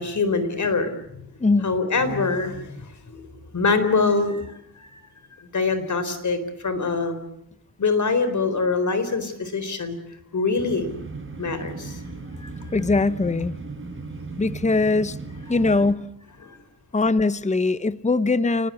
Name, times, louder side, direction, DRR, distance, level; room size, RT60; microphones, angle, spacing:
voice 1, 0.0-1.3 1.6-2.7 3.2-3.3 3.5-4.5 4.9-5.0 5.5-7.2 7.8-10.0 10.3-10.9 11.4-12.0 16.4-16.6, left 4 dB, 55° left, 11 dB, 4.1 m, -24 dB
voice 2, 1.4-1.7 12.7-13.6 14.4-15.2 15.5-16.1 16.9-18.7, left 3 dB, 20° left, 15 dB, 0.9 m, -21 dB
sound 1, 10.6-15.9, right 3 dB, 35° right, 7.1 m, -37 dB
29.0 x 20.0 x 8.6 m, 0.78 s
cardioid pair, 75°, 35 cm